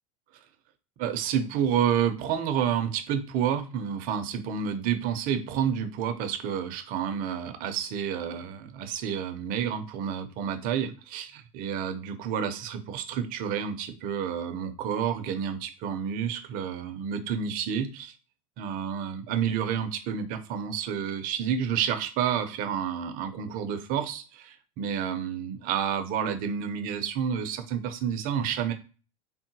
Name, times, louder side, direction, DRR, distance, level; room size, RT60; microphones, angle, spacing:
voice 1, 1.0-18.1 18.6-28.7, right 8 dB, 50° right, 8 dB, 0.6 m, -29 dB
3.7 x 2.1 x 2.8 m, 0.35 s
supercardioid pair, 105°, 18 cm